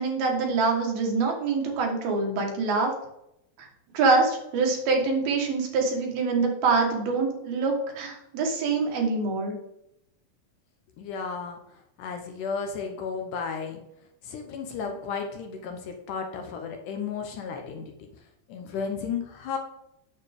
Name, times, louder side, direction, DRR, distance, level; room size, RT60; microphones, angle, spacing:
voice 1, 0.0-2.9 3.6-3.7 3.9-9.6, right 4 dB, 80° right, 1 dB, 3.5 m, -25 dB
voice 2, 11.0-11.6 12.0-13.8 14.2-17.9 18.5-19.6, left 5 dB, 70° left, 4 dB, 2.2 m, -33 dB
8.7 x 7.1 x 3.6 m, 0.80 s
omnidirectional pair, 4.2 m